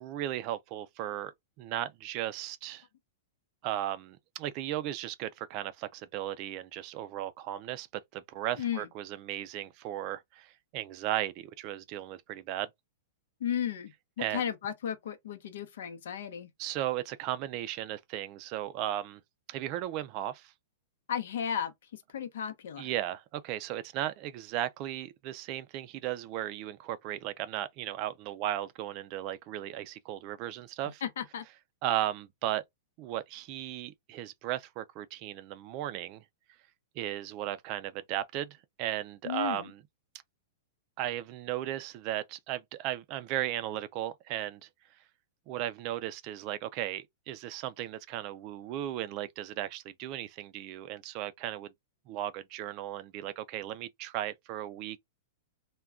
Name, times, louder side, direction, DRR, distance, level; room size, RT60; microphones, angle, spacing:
voice 1, 0.0-2.8 3.6-7.9 8.1-12.7 14.2-14.4 16.6-19.2 19.5-20.5 22.8-31.0 31.8-32.6 33.0-36.2 37.0-39.8 41.0-44.7 45.5-51.7 52.1-55.0, right 13 dB, 40° right, 0.3 m, -36 dB
voice 2, 8.6-8.9 13.4-16.5 21.1-22.9 31.0-31.4 39.2-39.7, left 9 dB, 75° left, 0.7 m, -34 dB
2.3 x 2.2 x 3.5 m
hypercardioid pair, 145°, 0 cm